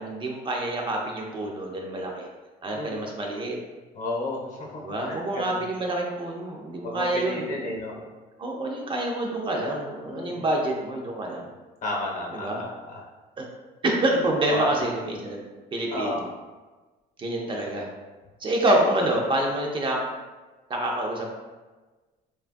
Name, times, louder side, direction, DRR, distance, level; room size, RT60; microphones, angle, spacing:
voice 1, 0.0-2.3 2.6-3.6 4.8-7.7 8.4-11.5 12.3-12.6 13.4-13.5 13.8-15.4 15.7-16.3 17.2-17.9 18.4-20.0 20.7-21.3, right 1 dB, 30° right, -1 dB, 0.4 m, -27 dB
voice 2, 3.9-5.6 6.8-7.9 10.1-10.4 11.8-13.0 14.5-14.8 15.9-16.2, left 2 dB, 50° left, -2 dB, 0.8 m, -32 dB
3.1 x 2.3 x 2.5 m, 1.3 s
cardioid pair, 110°, 17 cm